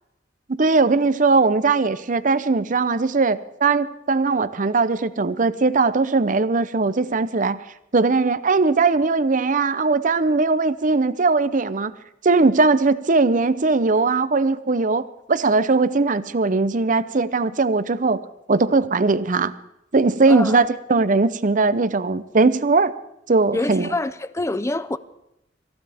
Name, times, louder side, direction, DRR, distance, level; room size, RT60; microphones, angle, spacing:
voice 1, 0.5-7.6 7.9-11.9 12.2-18.2 18.5-19.5 19.9-22.9 23.3-23.9, right 3 dB, 45° right, 0.7 m, -19 dB
voice 2, 20.3-20.6 23.5-25.0, left 2 dB, 15° left, 0.6 m, -26 dB
25.5 x 15.0 x 3.5 m
head